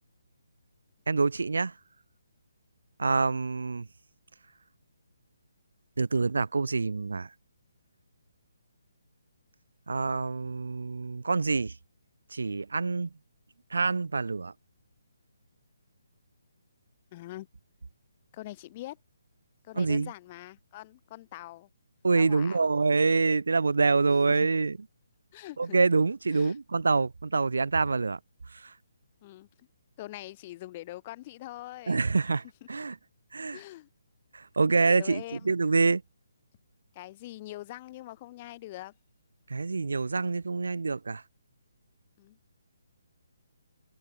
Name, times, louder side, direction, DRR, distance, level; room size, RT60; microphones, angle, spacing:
voice 1, 1.1-1.7 3.0-3.9 6.0-7.3 9.9-11.7 12.3-13.1 13.7-14.5 19.8-20.1 22.0-24.8 25.6-28.2 28.5-28.7 31.9-33.0 33.3-33.6 34.3-36.0 39.5-41.2, right 4 dB, 90° right, 2.4 m, -26 dB
voice 2, 17.1-17.5 18.3-19.0 19.6-21.7 22.2-22.6 24.3-24.5 25.3-25.8 26.3-26.6 29.2-29.7 30.0-32.0 33.5-33.9 34.9-35.5 36.9-38.9 42.2-42.4, left 16 dB, 25° left, 1.8 m, -43 dB
hypercardioid pair, 170°, 0 cm